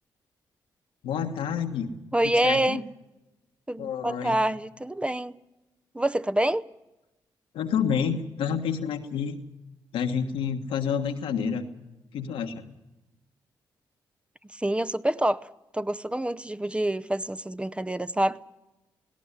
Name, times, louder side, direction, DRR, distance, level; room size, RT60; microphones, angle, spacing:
voice 1, 1.0-1.9 2.2-2.8 3.8-4.4 7.5-9.4 9.9-11.6 12.1-12.6, left 7 dB, 85° left, 1.5 m, -29 dB
voice 2, 2.1-2.8 3.7-5.3 5.9-6.6 14.6-15.5 15.7-18.4, right 1 dB, 10° right, 0.7 m, -26 dB
18.0 x 17.0 x 9.8 m
supercardioid pair, 50°, 9 cm